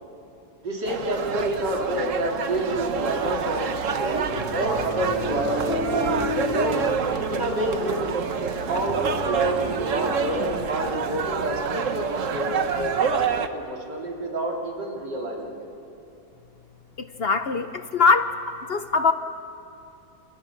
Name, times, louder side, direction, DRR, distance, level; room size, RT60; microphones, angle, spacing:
voice 1, 0.6-6.8 7.3-8.0 8.7-15.7, right 1 dB, 75° right, -1 dB, 3.8 m, -29 dB
sound 1, 0.8-13.5, right 6 dB, 50° right, 1.3 m, -27 dB
sound 2, 4.3-10.5, left 2 dB, 30° left, 2.9 m, -33 dB
voice 2, 17.0-19.1, left 4 dB, 50° left, 9 dB, 0.8 m, -22 dB
29.5 x 27.5 x 6.0 m, 2.8 s
omnidirectional pair, 1.8 m